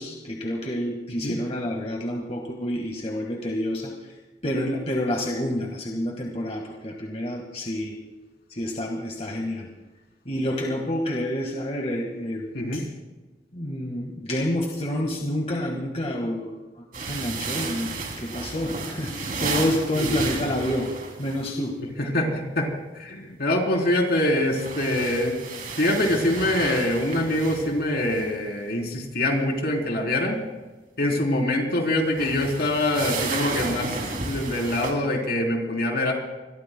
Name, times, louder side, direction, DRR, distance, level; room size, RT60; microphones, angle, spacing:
voice 1, 0.0-4.1 4.4-7.9 8.5-9.7 10.3-12.5 12.7-12.8 13.5-17.9 18.2-20.9 21.2-21.8, left 1 dB, 40° left, 1 dB, 1.8 m, -28 dB
sound 1, 16.9-21.5 24.3-28.3 32.0-34.9, right 3 dB, 50° right, 3.2 m, -32 dB
voice 2, 22.0-25.4 25.8-30.4 31.0-34.0 34.2-36.1, left 1 dB, 60° left, 1 dB, 3.9 m, -24 dB
26.0 x 22.5 x 2.3 m, 1.2 s
head